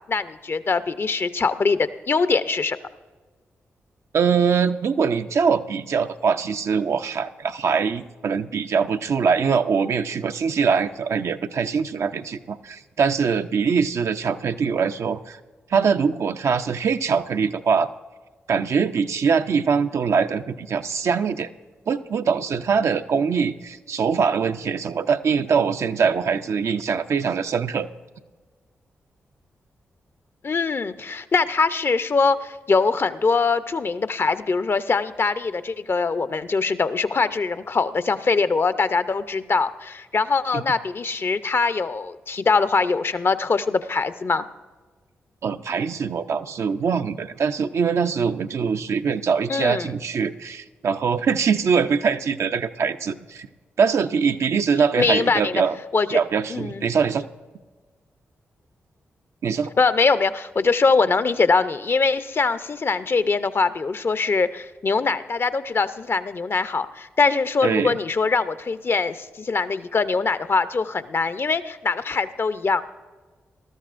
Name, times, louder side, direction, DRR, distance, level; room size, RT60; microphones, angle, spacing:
voice 1, 0.1-2.8 30.4-44.4 49.5-49.9 55.0-55.6 55.9-56.2 56.5-56.9 59.8-72.8, left 4 dB, 50° left, 12 dB, 0.6 m, -22 dB
voice 2, 4.1-15.4 15.7-17.9 18.5-21.5 21.9-27.9 40.5-40.6 45.4-53.5 53.8-55.8 56.1-57.2 59.4-59.7 67.6-68.0, right 6 dB, 65° right, 8 dB, 0.5 m, -23 dB
19.0 x 13.0 x 2.5 m, 1.3 s
supercardioid pair, 45°, 5 cm